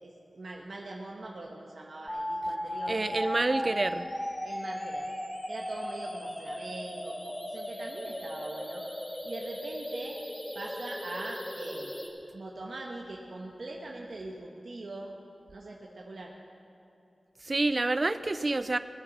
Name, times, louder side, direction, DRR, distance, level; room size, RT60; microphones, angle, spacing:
voice 1, 0.0-3.8 4.4-5.1 5.5-8.8 9.2-10.2 10.5-11.9 12.3-15.1 15.5-16.3, right 2 dB, 65° right, -1 dB, 1.2 m, -42 dB
sound 1, 2.1-12.1, left 1 dB, 25° left, 1.8 m, -37 dB
voice 2, 2.9-4.0 17.4-18.8, right 2 dB, 40° right, 12 dB, 0.4 m, -28 dB
20.0 x 8.3 x 5.9 m, 2.8 s
wide cardioid pair, 70°, 0 cm